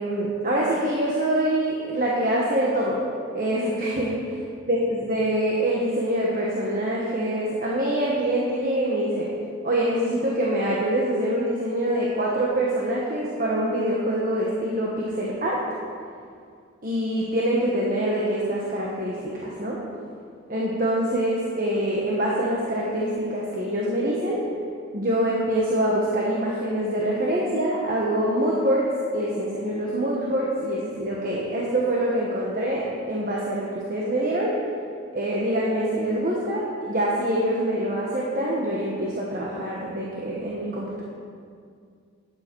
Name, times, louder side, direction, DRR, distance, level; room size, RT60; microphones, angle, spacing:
voice 1, 0.0-3.0 3.3-4.2 4.7-9.3 9.6-15.6 16.8-19.8 20.5-24.4 24.9-34.6 35.1-41.0, right 1 dB, 40° right, -4 dB, 1.3 m, -25 dB
12.0 x 9.5 x 4.7 m, 2.3 s
head